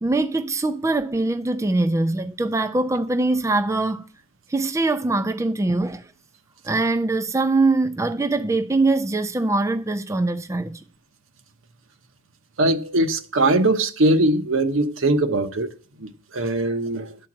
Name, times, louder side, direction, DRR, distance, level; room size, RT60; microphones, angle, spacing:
voice 1, 0.0-4.0 4.5-6.0 6.6-10.8, right 2 dB, 15° right, 0.4 m, -22 dB
voice 2, 12.6-15.7 16.0-17.1, right 2 dB, 70° right, 0.9 m, -21 dB
11.5 x 4.5 x 7.3 m
head